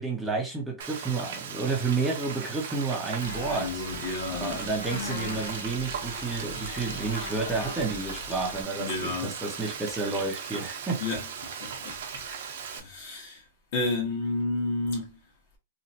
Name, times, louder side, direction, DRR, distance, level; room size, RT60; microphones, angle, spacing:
voice 1, 0.0-3.8 4.3-11.0 12.2-12.5, right 4 dB, 5° right, 0.6 m, -31 dB
Frying (food), 0.8-12.8, right 7 dB, 65° right, 0.7 m, -38 dB
sound 1, 3.2-8.6, left 3 dB, 80° left, 0.9 m, -40 dB
voice 2, 3.5-4.6 4.9-5.4 8.8-9.3 11.0-11.2 11.6-12.0 12.7-13.4 13.7-15.1, left 3 dB, 50° left, 1.3 m, -31 dB
3.0 x 2.4 x 2.7 m
supercardioid pair, 160°, 0 cm